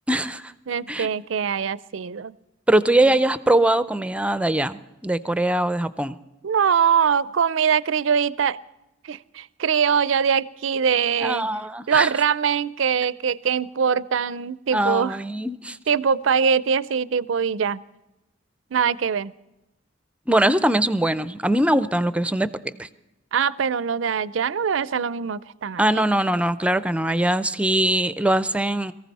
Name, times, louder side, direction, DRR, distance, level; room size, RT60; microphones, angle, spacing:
voice 1, 0.1-0.5 0.9-1.1 2.7-6.1 11.2-12.1 14.7-15.8 20.3-22.5 22.8-22.9 25.8-28.9, right 1 dB, 5° right, 14 dB, 0.5 m, -21 dB
voice 2, 0.7-2.3 2.9-3.1 6.4-8.6 9.0-11.5 11.9-15.2 15.9-17.8 18.7-19.3 23.3-26.0, right 7 dB, 70° right, 18 dB, 0.5 m, -23 dB
22.5 x 15.0 x 4.1 m, 0.94 s
head